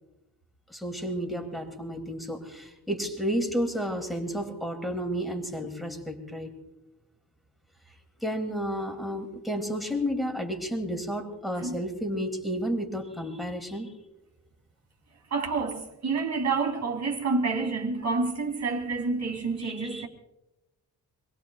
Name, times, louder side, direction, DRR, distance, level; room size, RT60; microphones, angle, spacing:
voice 1, 0.7-6.6 8.2-13.9 19.6-20.1, equal, ahead, 2.5 m, -31 dB
voice 2, 15.3-20.1, right 4 dB, 45° right, 2.7 m, -28 dB
26.5 x 20.5 x 2.3 m
wide cardioid pair, 150°, 38 cm